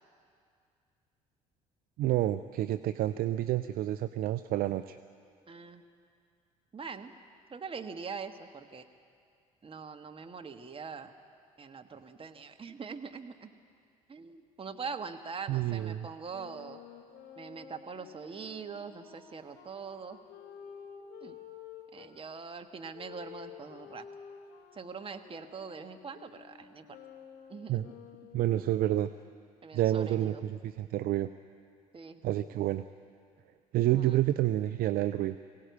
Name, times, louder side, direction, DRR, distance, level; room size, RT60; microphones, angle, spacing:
voice 1, 2.0-5.0 15.5-16.1 27.7-27.9 28.3-29.1 29.7-31.3 32.2-32.8 33.7-35.4, right 13 dB, 55° right, 12 dB, 0.6 m, -29 dB
voice 2, 5.5-5.8 6.7-7.1 7.5-8.8 9.6-11.1 11.6-13.5 14.1-16.8 17.4-20.2 21.2-21.3 21.9-24.0 24.7-26.8 27.5-27.9 28.5-28.6 29.6-30.4 31.9-32.2 34.0-34.2, right 5 dB, 30° right, 6 dB, 1.5 m, -43 dB
Wind instrument woodwind instrument, 16.3-22.1 22.9-28.7, left 8 dB, 60° left, 3.5 m, -51 dB
22.5 x 17.5 x 8.3 m, 2.3 s
figure-of-eight pair, 55°, 19 cm